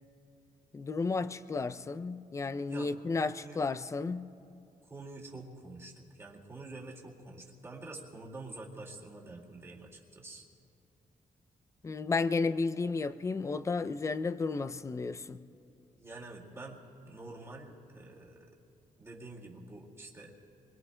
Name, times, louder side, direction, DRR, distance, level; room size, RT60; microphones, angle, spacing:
voice 1, 0.7-4.3 11.8-15.4, left 4 dB, 20° left, 0.4 m, -33 dB
voice 2, 3.2-3.7 4.9-10.4 16.0-18.6 19.0-20.3, right 2 dB, 20° right, 2.1 m, -47 dB
28.0 x 23.0 x 2.2 m
wide cardioid pair, 155°, 14 cm